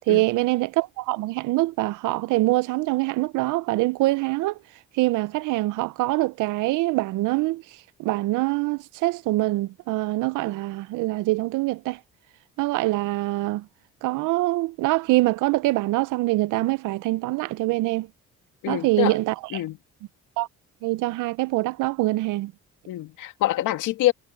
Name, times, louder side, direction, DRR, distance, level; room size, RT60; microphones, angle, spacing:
voice 1, 0.1-4.6 4.9-7.6 8.0-12.0 12.6-13.7 14.0-18.1 18.7-19.3 20.4-20.5 20.8-22.5, right 20 dB, 90° right, 0.5 m, -24 dB
voice 2, 18.6-19.2 19.5-19.8 22.9-24.1, left 14 dB, 90° left, 2.3 m, -25 dB
cardioid pair, 90°, 30 cm